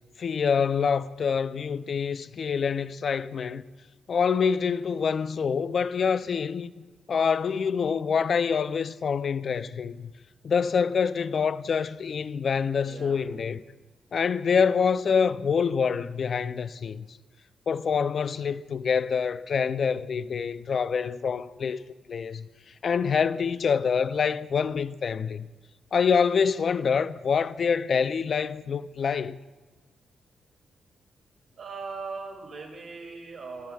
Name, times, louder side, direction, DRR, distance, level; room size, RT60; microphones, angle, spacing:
voice 1, 0.2-3.6 4.1-6.7 7.1-10.1 10.4-13.6 14.1-17.1 17.7-21.8 22.1-25.5 25.9-29.4, left 6 dB, 50° left, 0.4 m, -26 dB
voice 2, 12.8-13.3 31.6-33.7, right 4 dB, 60° right, 2.6 m, -39 dB
21.0 x 15.0 x 2.3 m
wide cardioid pair, 135°, 0 cm